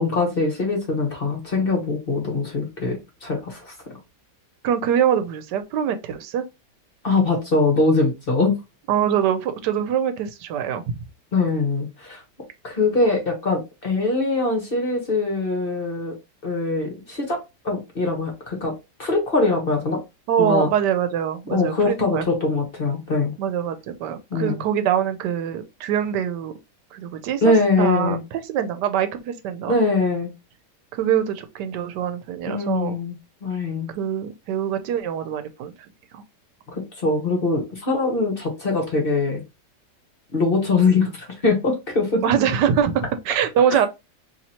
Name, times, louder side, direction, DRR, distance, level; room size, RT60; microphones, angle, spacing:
voice 1, 0.0-3.7 7.0-8.5 11.3-12.2 12.6-16.2 16.4-20.0 20.4-20.7 21.5-23.3 24.3-24.6 27.4-28.2 29.7-30.3 32.4-33.1 33.4-33.9 36.7-39.4 40.3-42.2 43.7-43.9, left 3 dB, 40° left, 1.0 m, -22 dB
voice 2, 4.6-6.4 8.9-11.0 20.3-22.2 23.4-26.5 26.9-29.8 30.9-33.0 33.9-35.7 36.1-36.2 42.2-43.9, right 9 dB, 85° right, 1.2 m, -24 dB
3.0 x 2.9 x 4.0 m
omnidirectional pair, 1.8 m